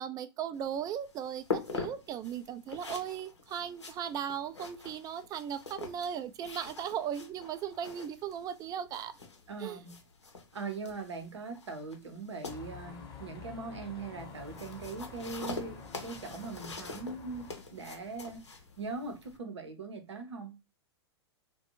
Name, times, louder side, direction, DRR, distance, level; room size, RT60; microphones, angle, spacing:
voice 1, 0.0-9.1 9.6-9.8, right 9 dB, 25° right, 0.4 m, -37 dB
sound 1, 0.5-19.4, left 4 dB, 90° left, 0.7 m, -44 dB
voice 2, 9.5-10.0 10.5-18.4 18.8-20.6, right 4 dB, 80° right, 0.7 m, -41 dB
sound 2, 12.5-17.5, left 5 dB, 35° left, 0.8 m, -48 dB
2.5 x 2.2 x 2.8 m
hypercardioid pair, 100°, 14 cm